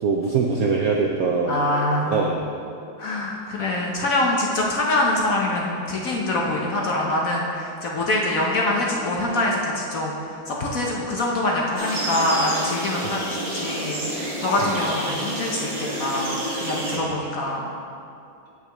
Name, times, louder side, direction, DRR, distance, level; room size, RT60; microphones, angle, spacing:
voice 1, 0.0-1.5 2.1-2.5 13.0-13.2 14.6-14.8 16.9-17.1, right 5 dB, 70° right, 0 dB, 0.8 m, -23 dB
voice 2, 1.4-2.3 3.0-10.2 10.5-17.7, left 1 dB, 55° left, -2 dB, 1.0 m, -24 dB
sound 1, 11.7-17.0, right 1 dB, 25° right, 1.3 m, -29 dB
15.0 x 5.7 x 3.0 m, 2.6 s
omnidirectional pair, 2.2 m